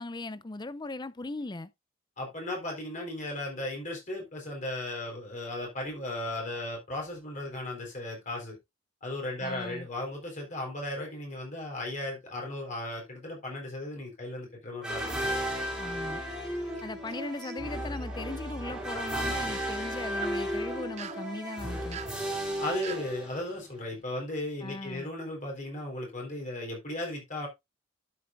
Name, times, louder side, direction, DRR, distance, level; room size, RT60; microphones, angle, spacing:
voice 1, 0.0-1.7 9.4-9.9 15.8-16.2 16.8-22.0 24.6-25.1, left 2 dB, 20° left, 0.5 m, -38 dB
voice 2, 2.2-8.6 9.0-15.1 22.6-27.5, left 1 dB, 40° left, 4.0 m, -36 dB
sound 1, 14.8-23.7, equal, 5° right, 3.1 m, -34 dB
sound 2, 16.5-17.2 17.4-18.1 20.0-20.4 21.0-21.2 21.9-22.2 22.8-23.1, right 8 dB, 35° right, 0.5 m, -43 dB
12.0 x 6.9 x 2.5 m
head